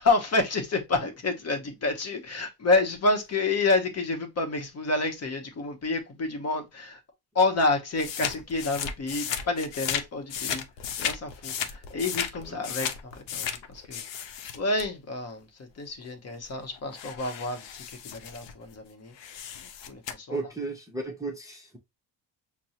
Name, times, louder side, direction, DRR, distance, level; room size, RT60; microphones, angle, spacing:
voice 1, 0.0-7.0 7.3-10.6 11.0-14.0 14.5-19.1 19.9-20.4, left 3 dB, 35° left, 0.8 m, -29 dB
sound 1, 8.0-10.0 10.3-14.9 16.0-16.1 16.5-18.7 19.1-20.1, left 8 dB, 70° left, 0.7 m, -34 dB
voice 2, 20.3-21.8, right 3 dB, 10° right, 0.6 m, -35 dB
6.0 x 2.0 x 2.7 m
cardioid pair, 155°, 45 cm